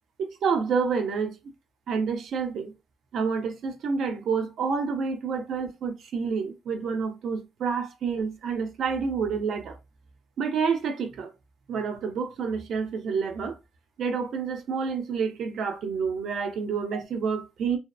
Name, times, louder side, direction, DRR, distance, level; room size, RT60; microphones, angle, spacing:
voice 1, 0.2-1.3 1.9-2.7 3.1-9.8 10.4-11.3 11.7-13.6 14.0-17.8, right 5 dB, 70° right, 0.6 m, -28 dB
2.8 x 2.0 x 2.2 m
cardioid pair, 90°, 0 cm